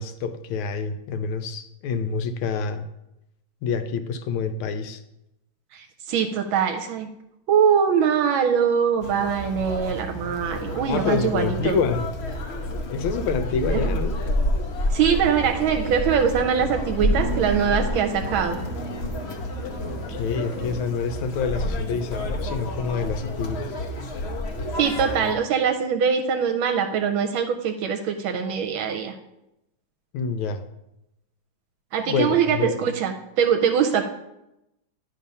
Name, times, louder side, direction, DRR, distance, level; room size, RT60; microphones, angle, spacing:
voice 1, 0.0-2.9 3.6-5.0 10.9-12.1 12.9-14.1 19.9-23.7 30.1-30.6 32.0-32.7, left 5 dB, 85° left, 10 dB, 1.5 m, -27 dB
voice 2, 5.7-7.1 7.5-11.8 13.7-14.0 14.9-18.6 24.8-29.1 31.9-34.0, right 7 dB, 80° right, 5 dB, 1.4 m, -22 dB
Conversation, 9.0-25.3, left 1 dB, 70° left, 0.6 m, -29 dB
sound 1, 15.2-20.8, right 4 dB, 55° right, 1.1 m, -37 dB
9.8 x 3.5 x 5.4 m, 0.87 s
omnidirectional pair, 2.2 m